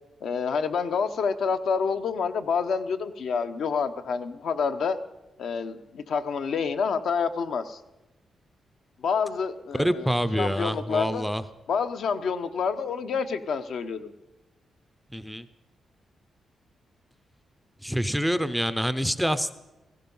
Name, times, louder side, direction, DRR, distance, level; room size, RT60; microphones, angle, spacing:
voice 1, 0.2-5.0 5.4-7.8 9.0-10.1 10.4-11.3 11.7-14.1, left 5 dB, 60° left, 9 dB, 0.8 m, -28 dB
voice 2, 9.7-11.4 15.1-15.5 17.8-19.5, equal, ahead, 12 dB, 0.5 m, -26 dB
16.5 x 16.0 x 5.5 m, 1.0 s
wide cardioid pair, 180°, 0 cm